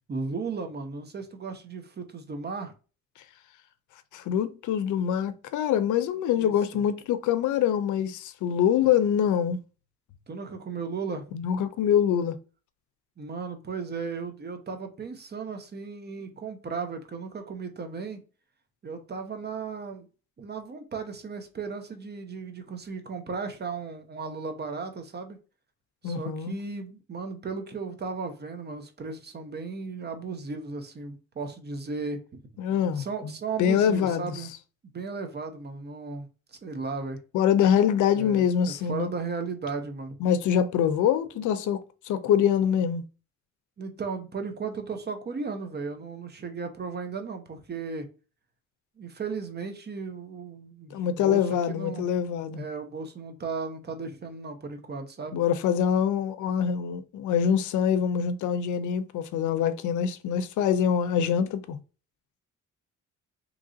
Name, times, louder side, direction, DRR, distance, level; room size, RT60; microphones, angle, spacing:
voice 1, 0.1-2.7 6.3-6.8 10.3-11.3 13.2-18.2 18.8-20.1 20.4-25.4 26.0-32.4 33.0-34.5 34.9-37.2 38.1-40.2 43.8-48.1 49.0-52.1 52.5-55.4, right 4 dB, 35° right, 0.8 m, -35 dB
voice 2, 4.1-9.6 11.3-12.4 26.0-26.6 32.6-33.3 33.6-34.4 37.3-39.1 40.2-43.0 50.9-52.6 55.3-61.8, left 8 dB, 75° left, 0.5 m, -25 dB
3.1 x 2.5 x 3.7 m
cardioid pair, 90°, 30 cm